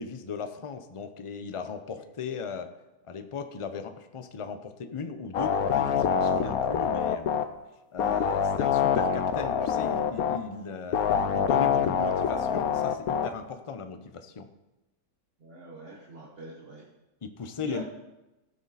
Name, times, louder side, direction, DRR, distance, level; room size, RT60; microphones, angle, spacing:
voice 1, 0.0-2.7 3.1-7.3 7.9-14.5 17.2-17.8, left 5 dB, 40° left, 8 dB, 0.4 m, -37 dB
sound 1, 5.3-7.4 8.0-10.4 10.9-13.3, left 7 dB, 75° left, 1.2 m, -25 dB
voice 2, 15.4-16.9 17.6-17.8, right 2 dB, 45° right, -2 dB, 1.3 m, -42 dB
15.5 x 6.5 x 4.1 m, 1.0 s
omnidirectional pair, 1.6 m